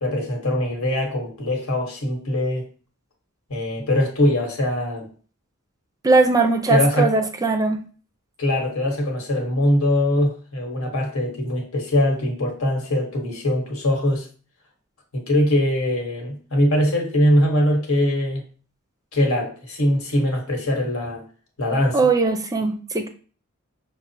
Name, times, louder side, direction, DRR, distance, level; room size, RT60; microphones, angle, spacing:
voice 1, 0.0-2.6 3.5-5.1 6.7-7.1 8.4-14.3 15.1-18.4 19.1-21.2 21.6-22.0, left 1 dB, 90° left, 1 dB, 1.2 m, -22 dB
voice 2, 6.0-7.8 21.9-23.1, right 3 dB, 15° right, 6 dB, 0.4 m, -19 dB
5.9 x 2.1 x 2.7 m, 0.39 s
head